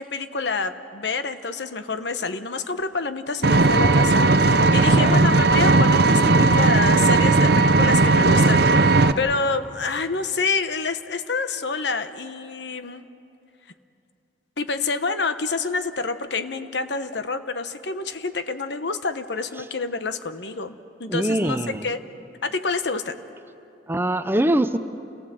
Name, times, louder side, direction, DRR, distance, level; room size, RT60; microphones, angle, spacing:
voice 1, 0.0-13.0 14.6-20.7 21.0-21.6 21.8-22.0 22.4-23.2, left 4 dB, 75° left, 10 dB, 1.0 m, -27 dB
Vehicle, 3.4-9.1, right 3 dB, 65° right, 0.7 m, -16 dB
voice 2, 4.8-5.3 21.1-21.9 23.9-24.8, right 1 dB, 15° right, 10 dB, 0.7 m, -23 dB
28.5 x 18.0 x 7.7 m, 2.6 s
head